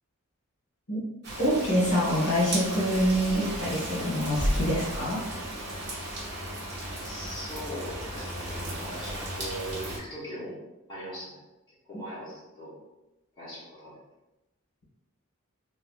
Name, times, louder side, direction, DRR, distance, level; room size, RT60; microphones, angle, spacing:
Rain, 1.2-10.0, right 1 dB, 50° right, 0.8 m, -34 dB
voice 1, 1.4-5.3 11.9-12.0, equal, 70° left, -6 dB, 1.5 m, -26 dB
voice 2, 7.0-10.6 10.9-11.4 11.9-12.7 13.4-14.0, equal, 20° left, -10 dB, 1.0 m, -40 dB
3.3 x 2.5 x 2.4 m, 0.98 s
head